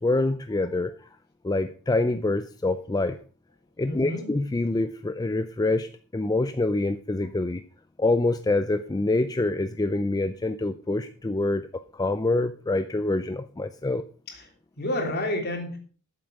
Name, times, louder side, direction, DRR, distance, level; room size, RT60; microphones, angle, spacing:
voice 1, 0.0-1.1 1.4-3.2 3.8-7.6 8.0-11.6 11.9-14.1, left 2 dB, 15° left, 11 dB, 0.4 m, -26 dB
voice 2, 3.8-4.3 14.3-14.4 14.8-15.8, left 1 dB, 45° left, 2 dB, 3.3 m, -29 dB
13.0 x 7.6 x 5.2 m, 0.40 s
head